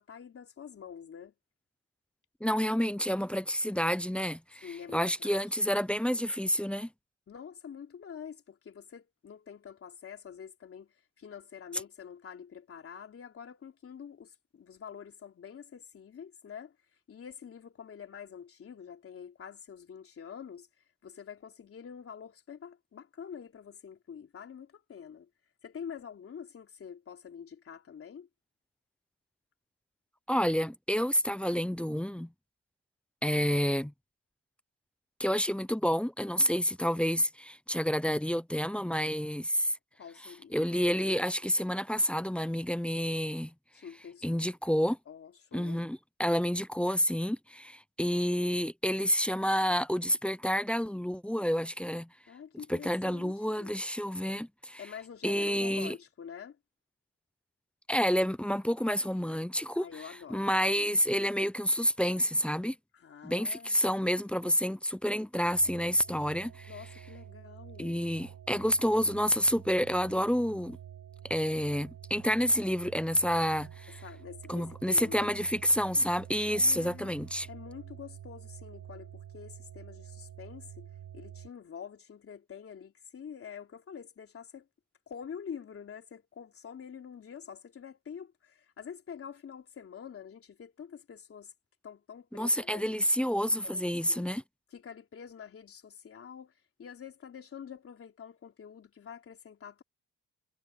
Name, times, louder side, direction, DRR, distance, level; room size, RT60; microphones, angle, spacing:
voice 1, 0.0-1.3 4.6-5.4 7.3-10.9 11.2-16.8 17.1-20.7 21.0-25.3 25.6-28.3 40.0-40.5 43.7-44.4 45.1-45.9 52.3-53.7 54.8-56.6 59.8-60.5 62.9-63.8 66.7-68.0 73.9-75.3 76.5-77.1 77.5-84.7 85.1-91.5 91.8-93.0 93.6-94.3 94.7-96.5 96.8-99.8, left 7 dB, 50° left, 3.6 m, -46 dB
voice 2, 2.4-6.9 30.3-32.3 33.2-33.9 35.2-39.7 40.5-43.5 44.2-45.0 45.5-52.1 52.7-54.8 55.2-55.9 57.9-60.0 60.3-62.7 63.2-66.7 67.8-70.8 71.2-73.9 74.5-77.5 92.3-94.4, equal, 5° left, 0.7 m, -29 dB
sound 1, 65.4-81.5, right 10 dB, 75° right, 5.4 m, -48 dB
cardioid pair, 90°, 30 cm